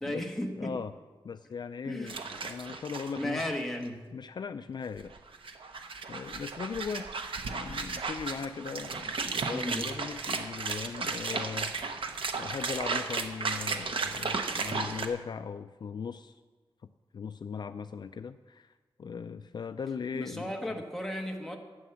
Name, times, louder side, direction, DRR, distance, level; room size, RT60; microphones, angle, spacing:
voice 1, 0.0-0.8 1.8-2.3 3.2-4.0 9.5-9.9 20.1-21.6, left 1 dB, 5° left, 1 dB, 1.4 m, -35 dB
voice 2, 0.6-0.9 1.2-3.6 4.1-5.1 6.1-7.1 7.5-16.4 17.1-20.8, left 6 dB, 50° left, 10 dB, 0.4 m, -39 dB
sound 1, 2.1-3.5 3.8-3.9 5.0-15.1, right 4 dB, 70° right, 0.9 m, -34 dB
13.0 x 8.4 x 7.1 m, 1.3 s
wide cardioid pair, 165°, 9 cm